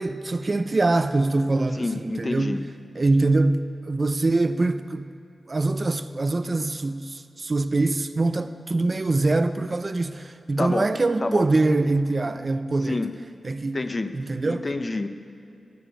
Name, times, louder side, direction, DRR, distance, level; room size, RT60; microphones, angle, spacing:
voice 1, 0.0-2.6 3.0-5.1 5.5-13.0 13.4-13.8 14.1-14.7, right 2 dB, 30° right, 0.4 m, -24 dB
voice 2, 1.7-2.6 10.6-10.9 11.2-11.5 12.8-13.1 13.7-14.1 14.5-15.1, left 2 dB, 25° left, 0.6 m, -28 dB
14.5 x 7.0 x 10.0 m
wide cardioid pair, 155°, 0 cm